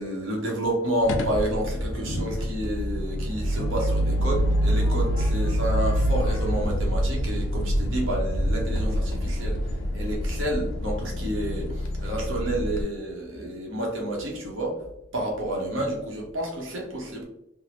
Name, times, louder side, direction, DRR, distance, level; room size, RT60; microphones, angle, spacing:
voice 1, 0.0-9.6 9.9-14.8 15.1-17.2, right 1 dB, 85° right, -1 dB, 1.0 m, -30 dB
sound 1, 1.1-12.8, equal, 85° left, 0.4 m, -26 dB
3.5 x 2.0 x 3.0 m, 0.83 s
head